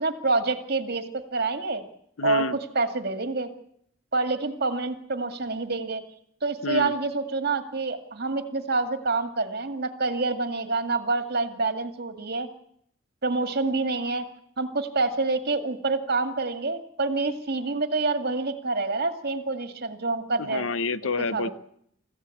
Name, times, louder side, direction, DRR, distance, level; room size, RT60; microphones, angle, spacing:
voice 1, 0.0-1.8 2.2-3.5 4.1-6.0 6.4-12.5 13.2-14.3 14.6-20.7 21.3-21.5, right 3 dB, 50° right, 8 dB, 2.1 m, -27 dB
voice 2, 2.2-2.6 6.6-6.9 20.4-21.5, left 3 dB, 80° left, 15 dB, 0.9 m, -28 dB
24.5 x 15.0 x 8.5 m, 0.71 s
head